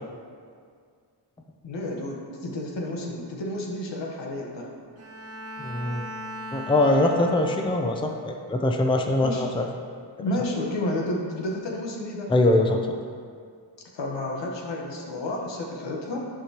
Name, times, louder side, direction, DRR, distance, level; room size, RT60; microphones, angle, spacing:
voice 1, 1.6-4.7 9.2-9.5 10.2-12.3 13.9-16.3, left 1 dB, 90° left, -1 dB, 1.2 m, -31 dB
Bowed string instrument, 5.0-8.2, equal, 35° right, 0.8 m, -38 dB
voice 2, 5.6-6.1 6.5-9.7 12.3-12.8, left 1 dB, 15° left, 3 dB, 0.4 m, -22 dB
11.0 x 5.2 x 2.9 m, 2.1 s
wide cardioid pair, 135°, 42 cm